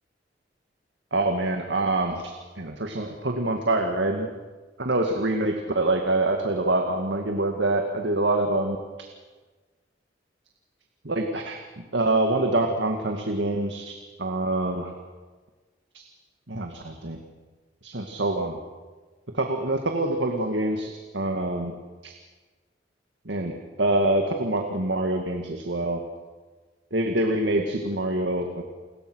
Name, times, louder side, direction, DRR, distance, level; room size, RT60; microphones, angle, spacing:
voice 1, 1.1-4.3 4.8-8.8 11.0-14.9 15.9-16.0 16.5-17.2 17.8-18.6 19.3-21.7 22.0-22.1 23.3-26.0 26.9-28.6, right 2 dB, 75° right, 3 dB, 2.1 m, -25 dB
29.5 x 21.0 x 6.4 m, 1.3 s
head